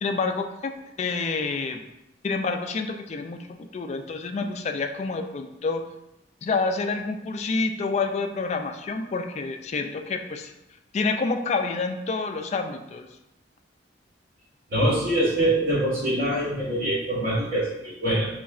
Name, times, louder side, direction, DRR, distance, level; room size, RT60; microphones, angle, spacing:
voice 1, 0.0-1.8 2.2-5.9 6.4-10.5 10.9-13.1, left 4 dB, 35° left, 6 dB, 0.3 m, -28 dB
voice 2, 14.7-18.3, right 1 dB, 50° right, -7 dB, 1.4 m, -24 dB
4.1 x 3.0 x 2.4 m, 0.88 s
head